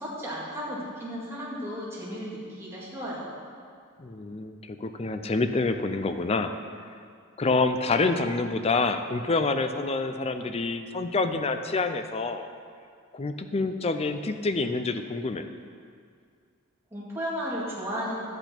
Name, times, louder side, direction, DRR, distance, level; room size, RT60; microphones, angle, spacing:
voice 1, 0.0-3.3 16.9-18.2, equal, 10° right, -7 dB, 2.2 m, -34 dB
voice 2, 4.0-6.5 7.4-12.5 13.1-15.5, left 3 dB, 30° left, 8 dB, 0.5 m, -27 dB
10.0 x 8.0 x 4.4 m, 2.3 s
head